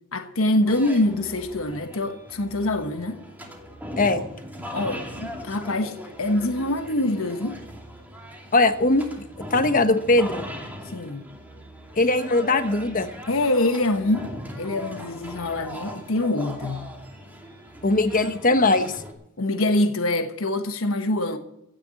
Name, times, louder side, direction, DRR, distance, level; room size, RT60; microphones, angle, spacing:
voice 1, 0.1-3.2 4.7-7.6 10.8-11.2 13.3-14.3 14.6-16.9 19.4-21.4, left 1 dB, 70° left, 1.2 m, -25 dB
sound 1, 0.7-19.1, equal, 10° right, 2.5 m, -39 dB
voice 2, 8.5-9.1 9.5-10.4 12.0-13.1 17.8-18.9, left 2 dB, 40° left, 1.2 m, -20 dB
16.5 x 7.0 x 8.3 m
head